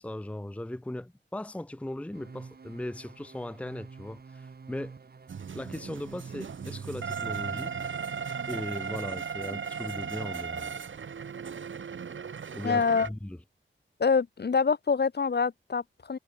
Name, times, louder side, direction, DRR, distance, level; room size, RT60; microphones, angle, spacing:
voice 1, 0.0-4.9 5.5-7.7 8.5-10.8 12.5-13.4, left 1 dB, 5° left, 0.7 m, -38 dB
sound 1, 2.1-9.1, right 5 dB, 50° right, 1.8 m, -47 dB
sound 2, 5.3-13.1, right 6 dB, 70° right, 1.3 m, -36 dB
voice 2, 12.6-13.1 14.0-16.2, left 5 dB, 55° left, 1.6 m, -26 dB
wide cardioid pair, 115°, 20 cm